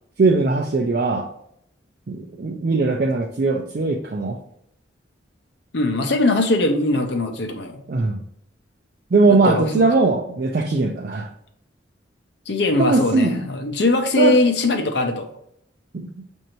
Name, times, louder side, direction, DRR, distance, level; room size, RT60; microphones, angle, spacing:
voice 1, 0.2-1.3 2.1-4.4 7.9-8.2 9.1-11.3 12.8-13.5 14.2-14.4 15.9-16.1, right 3 dB, 50° right, 1 dB, 0.4 m, -20 dB
voice 2, 5.7-7.8 9.3-9.9 12.5-15.3, left 2 dB, 60° left, 5 dB, 0.7 m, -21 dB
6.4 x 2.7 x 3.0 m, 0.73 s
head